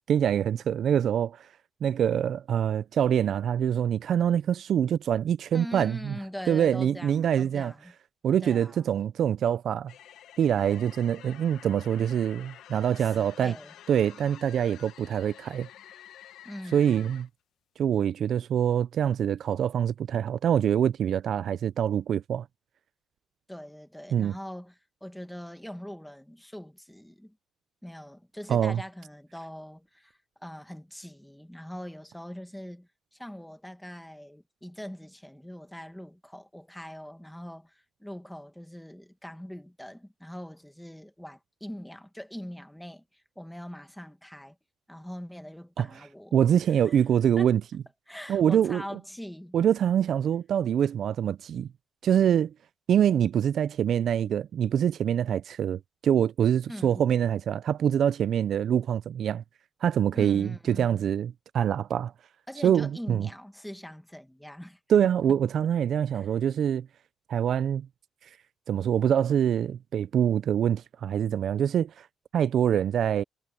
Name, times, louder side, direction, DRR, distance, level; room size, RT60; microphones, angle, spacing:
voice 1, 0.1-1.5 1.8-6.1 6.5-7.7 8.2-9.9 10.4-13.5 13.9-15.7 16.7-17.3 17.8-22.5 24.1-24.3 28.5-28.8 45.8-45.9 46.3-47.6 48.3-48.8 49.5-51.7 52.0-52.5 52.9-59.4 59.8-62.1 62.6-63.3 64.9-66.9 67.3-67.9 68.2-68.4 68.7-72.1 72.3-73.2, right 9 dB, 50° right, 0.3 m, -25 dB
voice 2, 5.5-7.9 8.4-8.9 13.0-13.7 16.4-17.1 23.5-27.4 27.8-44.5 44.9-46.4 46.7-47.0 47.4-47.5 48.1-49.6 56.7-57.1 60.1-61.0 62.5-64.8 66.1-66.3, equal, ahead, 1.5 m, -42 dB
sound 1, 9.9-17.3, left 11 dB, 70° left, 0.9 m, -50 dB
cardioid pair, 170°, 0 cm